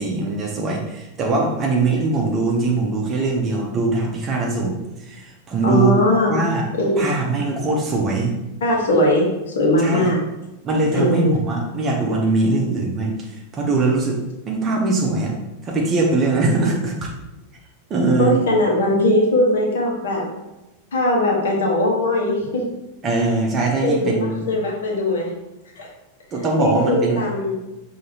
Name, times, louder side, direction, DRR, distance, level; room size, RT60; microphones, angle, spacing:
voice 1, 0.0-6.7 7.0-8.3 9.8-10.1 10.6-14.2 14.5-15.3 15.6-17.1 17.9-18.3 23.0-24.5 26.3-27.3, right 3 dB, 25° right, 0 dB, 0.7 m, -21 dB
voice 2, 5.6-6.4 6.8-7.1 8.6-10.2 10.9-11.4 18.2-20.3 20.9-22.7 23.8-25.3 25.8-25.9 26.6-27.5, left 1 dB, 60° left, -1 dB, 1.2 m, -20 dB
6.3 x 2.8 x 2.8 m, 1.0 s
figure-of-eight pair, 90°, 0 cm